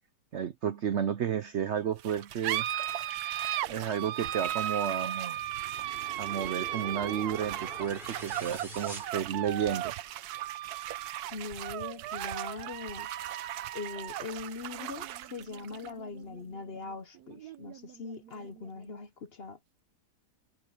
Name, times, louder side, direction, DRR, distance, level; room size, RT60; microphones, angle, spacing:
voice 1, 0.3-2.7 3.7-5.4 6.2-9.9, right 8 dB, 60° right, 0.7 m, -32 dB
sound 1, 2.0-19.0, right 12 dB, 80° right, 1.2 m, -36 dB
sound 2, 5.4-10.0, right 1 dB, 35° right, 7.4 m, -46 dB
voice 2, 11.3-13.1 13.7-19.6, left 4 dB, 45° left, 0.9 m, -41 dB
omnidirectional pair, 1.7 m